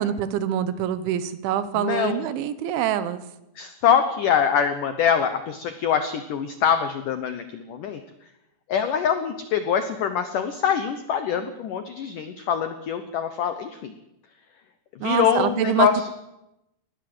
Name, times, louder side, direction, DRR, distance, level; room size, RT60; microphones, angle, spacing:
voice 1, 0.0-3.2 15.0-15.9, right 10 dB, 85° right, 13 dB, 3.5 m, -25 dB
voice 2, 1.7-2.3 3.6-8.0 8.7-13.9 15.0-16.1, left 8 dB, 80° left, 9 dB, 1.8 m, -24 dB
21.0 x 17.5 x 7.9 m, 0.91 s
omnidirectional pair, 5.3 m